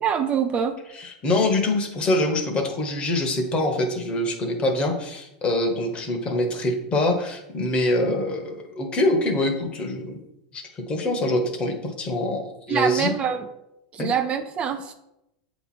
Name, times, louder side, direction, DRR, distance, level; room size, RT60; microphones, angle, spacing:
voice 1, 0.0-0.7 12.7-13.5 13.9-14.9, right 7 dB, 30° right, 7 dB, 0.4 m, -24 dB
voice 2, 0.9-10.2 10.5-13.1 14.0-14.1, left 1 dB, 25° left, 4 dB, 1.1 m, -24 dB
7.8 x 3.0 x 4.2 m, 0.86 s
supercardioid pair, 125°, 4 cm